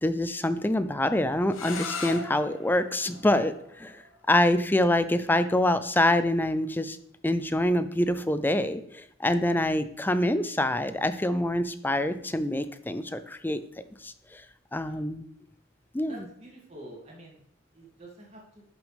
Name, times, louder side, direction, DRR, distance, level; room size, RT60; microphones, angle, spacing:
voice 1, 0.0-4.0 4.3-7.0 7.2-13.6 14.0-14.4 14.7-15.2 15.9-16.3, left 1 dB, 10° left, 11 dB, 0.4 m, -26 dB
sound 1, 1.5-7.2, left 4 dB, 85° left, 1.0 m, -42 dB
voice 2, 16.1-17.4 17.7-18.6, right 1 dB, 30° right, -3 dB, 2.5 m, -47 dB
11.5 x 6.3 x 3.4 m, 0.70 s
head